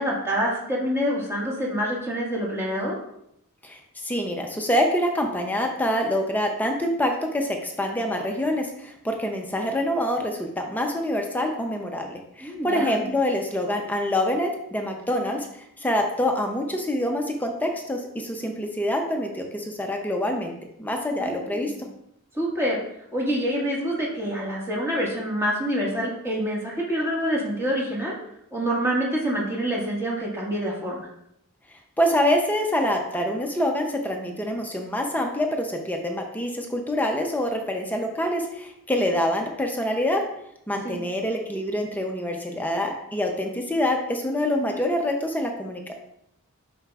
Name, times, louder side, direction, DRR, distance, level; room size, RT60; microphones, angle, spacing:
voice 1, 0.0-3.0 12.4-13.0 21.2-21.7 22.3-22.8 23.1-28.1 28.5-31.0 40.8-41.0, equal, 10° right, -5 dB, 1.7 m, -26 dB
voice 2, 3.6-20.5 20.8-21.7 32.0-40.2 40.7-45.9, left 1 dB, 10° left, 2 dB, 0.6 m, -26 dB
7.3 x 5.5 x 2.4 m, 0.77 s
head